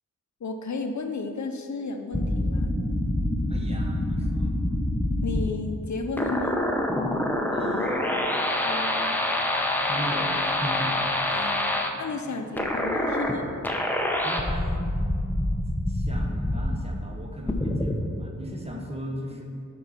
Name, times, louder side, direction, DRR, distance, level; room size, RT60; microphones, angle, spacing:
voice 1, 0.4-2.7 5.2-6.6 11.3-13.5, left 3 dB, 65° left, 6 dB, 0.7 m, -33 dB
sound 1, 2.1-5.5 6.2-11.9 12.6-13.4 13.6-16.8 17.5-17.9, left 1 dB, 5° left, 0.8 m, -26 dB
voice 2, 3.5-4.5 7.5-9.2 9.8-11.9 12.2-12.4 14.2-15.0 15.9-19.4, equal, 20° right, 0 dB, 1.3 m, -38 dB
9.3 x 4.5 x 5.6 m, 2.3 s
wide cardioid pair, 75°, 31 cm